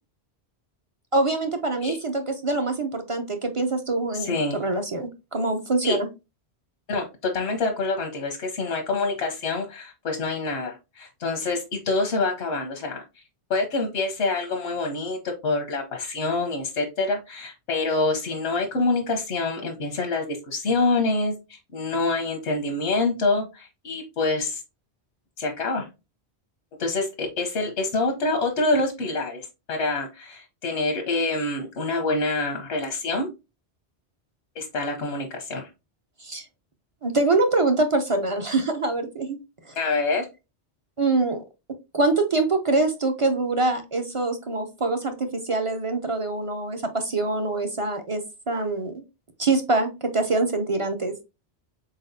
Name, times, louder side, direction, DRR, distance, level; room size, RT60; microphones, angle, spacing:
voice 1, 1.1-6.1 36.2-36.5 37.0-39.4 39.7-39.8 41.0-41.4 41.9-48.2 48.5-49.0 49.4-51.1, right 2 dB, 40° right, 6 dB, 0.5 m, -24 dB
voice 2, 4.1-4.6 5.8-6.0 6.9-13.0 13.5-24.6 25.4-25.9 26.8-33.3 34.6-35.7 39.8-40.3, left 3 dB, 90° left, 2 dB, 1.2 m, -26 dB
4.2 x 4.0 x 2.6 m, 0.26 s
omnidirectional pair, 1.1 m